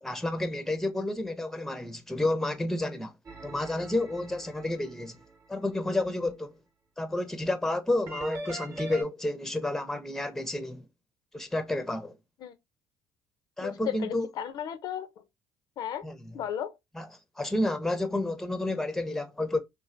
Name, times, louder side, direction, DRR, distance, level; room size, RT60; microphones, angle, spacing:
voice 1, 0.0-3.1 3.4-5.2 5.5-6.5 7.0-10.9 11.3-12.1 13.6-14.3 16.0-16.2 17.0-17.1 17.4-19.6, left 2 dB, 5° left, 0.5 m, -30 dB
sound 1, 3.3-5.4 8.1-9.0, right 1 dB, 35° right, 0.8 m, -41 dB
voice 2, 13.6-15.2 15.8-16.1 16.3-16.7, left 9 dB, 60° left, 0.4 m, -35 dB
3.1 x 2.4 x 2.5 m
supercardioid pair, 70°, 8 cm